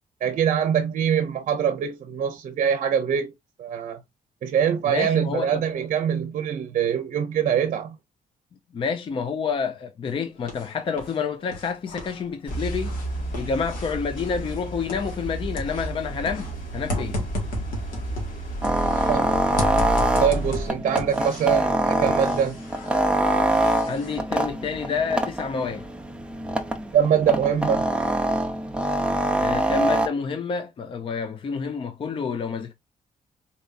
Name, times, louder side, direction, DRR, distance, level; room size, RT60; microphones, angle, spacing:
voice 1, 0.2-3.3 3.6-4.0 4.4-8.0 19.1-19.4 20.2-22.6 26.9-27.9, right 8 dB, 60° right, 0.6 m, -23 dB
voice 2, 4.9-5.6 8.7-12.9 13.3-17.2 23.9-25.8 29.4-32.7, left 5 dB, 40° left, 0.5 m, -28 dB
sound 1, 10.1-11.2 11.5-15.3 15.6-19.2 19.6-21.7 22.1-24.2, left 2 dB, 85° left, 1.8 m, -35 dB
sound 2, 12.5-20.7, right 1 dB, 70° left, 2.5 m, -32 dB
sound 3, 18.6-30.1, right 1 dB, 5° right, 0.7 m, -24 dB
4.1 x 3.4 x 2.5 m
cardioid pair, 125°, 14 cm